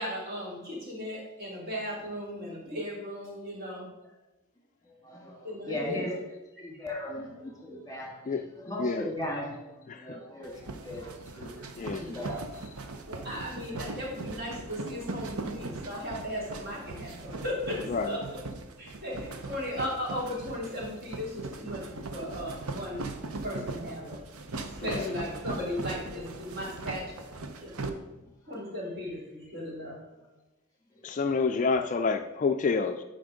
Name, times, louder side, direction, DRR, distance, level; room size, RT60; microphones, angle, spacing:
voice 1, 0.0-3.9 5.4-6.1 12.3-12.4 13.1-17.8 18.0-18.4 18.8-24.2 24.8-27.2 27.6-27.9 28.5-30.0, left 1 dB, 45° right, -5 dB, 3.3 m, -36 dB
voice 2, 5.0-6.1 6.6-12.4 12.8-13.0 30.9-31.5, left 1 dB, 15° left, -1 dB, 1.8 m, -38 dB
sound 1, 10.4-27.9, right 3 dB, 85° right, 0.8 m, -40 dB
voice 3, 24.8-25.1 31.0-33.0, left 4 dB, 35° left, 7 dB, 0.3 m, -28 dB
9.6 x 5.1 x 5.1 m, 1.0 s
head